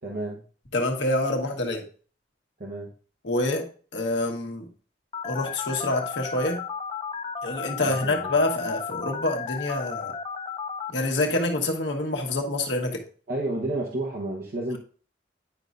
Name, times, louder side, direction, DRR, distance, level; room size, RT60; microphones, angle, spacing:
voice 1, 0.0-0.4 2.6-2.9 7.8-8.3 13.3-14.8, right 2 dB, 60° right, -1 dB, 1.0 m, -31 dB
voice 2, 0.7-1.8 3.2-4.7 5.2-6.6 7.4-10.1 10.9-13.0, left 2 dB, 80° left, 2 dB, 1.2 m, -26 dB
Telephone, 5.1-10.9, left 6 dB, 30° left, 0.4 m, -34 dB
9.8 x 5.2 x 2.5 m, 0.41 s
head